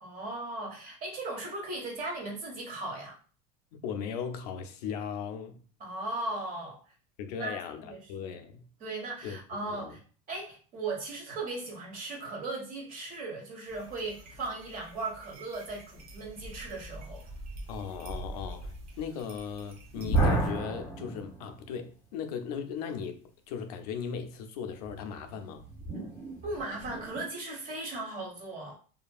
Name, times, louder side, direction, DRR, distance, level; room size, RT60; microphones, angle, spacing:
voice 1, 0.0-3.2 5.8-6.8 7.4-7.6 7.8-8.4 8.8-10.0 10.3-17.3 26.4-28.7, right 2 dB, 45° right, 1.2 m, -37 dB
voice 2, 3.7-5.6 7.2-8.6 9.2-10.0 17.7-25.7, left 7 dB, 85° left, 0.5 m, -38 dB
sound 1, 13.7-20.5, right 1 dB, 80° right, 0.9 m, -45 dB
sound 2, 20.0-21.9 24.8-27.2, right 2 dB, 10° left, 0.8 m, -32 dB
2.7 x 2.5 x 2.3 m
supercardioid pair, 130°, 19 cm